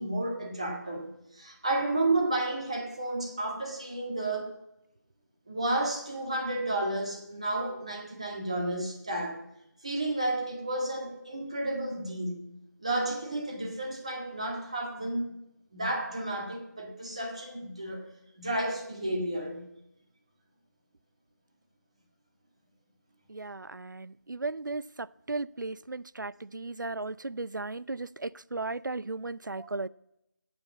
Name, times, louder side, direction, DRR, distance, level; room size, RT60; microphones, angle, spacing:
voice 1, 0.0-4.5 5.5-9.4 9.8-12.4 12.8-15.3 15.7-18.1 18.4-19.7 29.6-29.7, right 2 dB, 20° right, 1 dB, 1.7 m, -32 dB
voice 2, 23.3-29.9, right 3 dB, 90° right, 19 dB, 0.5 m, -36 dB
13.0 x 9.0 x 8.4 m, 0.84 s
figure-of-eight pair, 180°, 10 cm